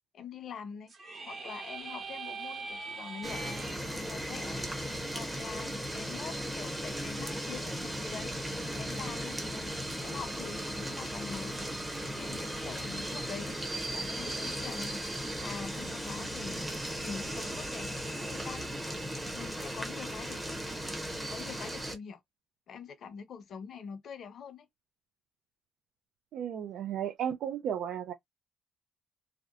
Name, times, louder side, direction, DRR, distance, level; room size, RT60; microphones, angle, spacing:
voice 1, 0.1-0.9 1.3-3.6 3.9-4.6 5.1-8.3 8.8-9.7 10.0-11.7 12.2-13.6 13.9-15.0 15.4-16.7 17.0-18.9 19.3-20.6 21.1-22.2 22.7-24.7, left 6 dB, 55° left, 0.6 m, -45 dB
sound 1, 0.9-3.8, right 4 dB, 40° right, 1.0 m, -41 dB
sound 2, 3.2-22.0, equal, 10° right, 0.7 m, -37 dB
voice 2, 26.3-28.1, right 9 dB, 75° right, 0.4 m, -34 dB
2.8 x 2.0 x 2.4 m
cardioid pair, 120°, 0 cm